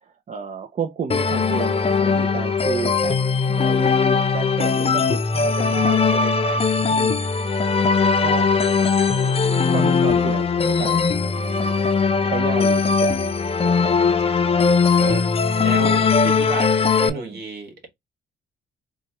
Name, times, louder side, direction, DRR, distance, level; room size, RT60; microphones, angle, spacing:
voice 1, 0.0-3.2 3.5-6.4 6.9-7.3 8.2-9.0 9.7-11.8 12.2-13.3 13.6-13.9 17.1-17.4, right 6 dB, 40° right, 0.5 m, -32 dB
sound 1, 1.1-17.1, left 5 dB, 30° left, 0.6 m, -19 dB
voice 2, 6.4-6.8 13.9-15.3 15.6-17.9, right 4 dB, 55° right, 1.8 m, -34 dB
4.2 x 2.3 x 2.8 m
cardioid pair, 90°, 20 cm